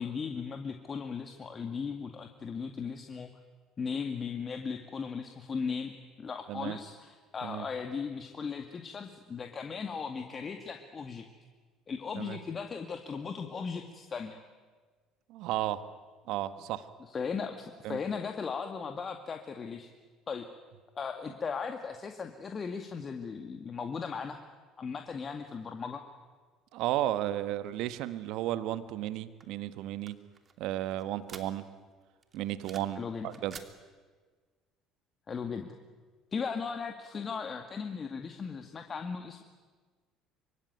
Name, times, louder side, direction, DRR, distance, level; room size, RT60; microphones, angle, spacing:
voice 1, 0.0-3.3 3.8-5.9 6.2-11.3 11.9-14.4 17.0-19.9 20.3-20.5 21.0-24.4 24.8-26.0 33.0-33.3 35.3-35.7 36.3-39.4, left 5 dB, 35° left, 5 dB, 2.2 m, -37 dB
voice 2, 15.3-15.8 16.3-16.9 17.8-18.0 26.7-30.2 30.6-31.7 32.3-33.6, right 13 dB, 65° right, 13 dB, 1.4 m, -33 dB
sound 1, 29.4-31.9 32.2-33.0 33.3-33.7, right 5 dB, 35° right, 2.9 m, -50 dB
25.0 x 24.0 x 9.3 m, 1.4 s
hypercardioid pair, 60°, 0 cm